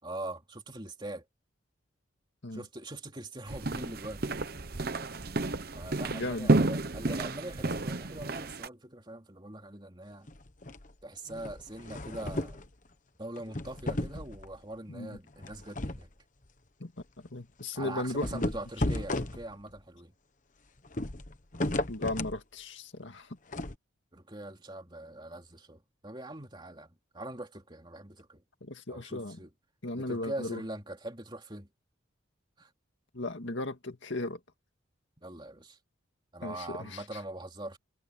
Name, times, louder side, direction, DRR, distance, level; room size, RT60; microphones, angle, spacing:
voice 1, 0.0-1.3 2.5-4.8 5.7-10.3 11.0-12.6 13.2-16.1 17.7-20.1 24.1-28.4 28.9-29.5 30.0-31.7 32.6-32.7 35.2-35.8 36.3-37.8, right 1 dB, 20° right, 3.3 m, -42 dB
sound 1, 3.5-8.7, right 2 dB, 50° right, 1.0 m, -31 dB
voice 2, 6.0-6.7 14.9-15.2 16.8-16.9 17.2-18.5 21.9-23.4 28.6-29.4 29.8-30.6 33.1-34.4 36.4-37.2, left 2 dB, 65° left, 2.1 m, -36 dB
sound 2, 10.3-10.9 11.3-12.7 13.4-14.6 15.4-16.1 16.4-16.5 17.0-17.1 18.0-19.8 20.8-22.4 23.5-23.7, left 1 dB, 40° left, 1.2 m, -34 dB
head